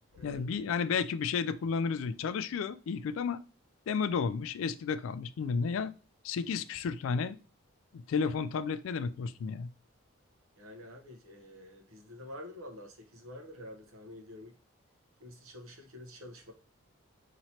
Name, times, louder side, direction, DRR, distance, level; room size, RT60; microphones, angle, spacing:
voice 1, 0.2-3.4 3.9-5.9 6.2-7.4 7.9-9.7, left 5 dB, 75° left, 0.3 m, -32 dB
voice 2, 10.6-14.5 15.2-16.5, left 1 dB, 80° right, 0.9 m, -48 dB
4.3 x 2.9 x 2.8 m
head